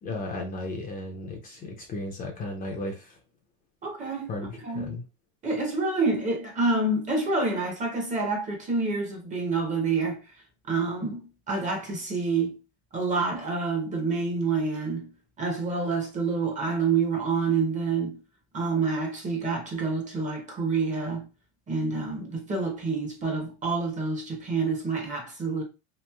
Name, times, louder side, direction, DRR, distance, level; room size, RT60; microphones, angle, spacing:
voice 1, 0.0-3.1 4.3-5.0, left 2 dB, 25° left, 0.5 m, -35 dB
voice 2, 3.8-4.3 4.6-4.9 5.4-10.2 10.7-12.6 12.9-15.1 15.4-18.2 18.5-21.3 21.7-25.6, right 4 dB, 20° right, 0.7 m, -27 dB
3.0 x 2.5 x 2.3 m
supercardioid pair, 140°, 36 cm